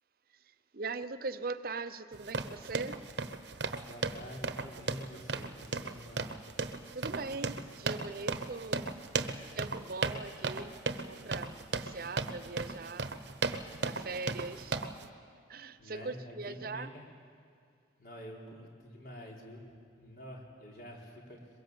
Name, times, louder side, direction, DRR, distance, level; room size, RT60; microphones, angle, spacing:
voice 1, 0.3-3.1 3.5-3.8 6.9-8.9 9.2-13.2 13.8-15.1 15.5-16.9, right 3 dB, 55° right, 12 dB, 0.7 m, -41 dB
sound 1, 2.1-15.1, right 3 dB, 70° right, 1.1 m, -36 dB
voice 2, 3.8-6.4 15.8-17.0 18.0-19.7 20.0-21.4, equal, 55° left, -1 dB, 4.1 m, -48 dB
22.5 x 22.0 x 8.0 m, 2.3 s
head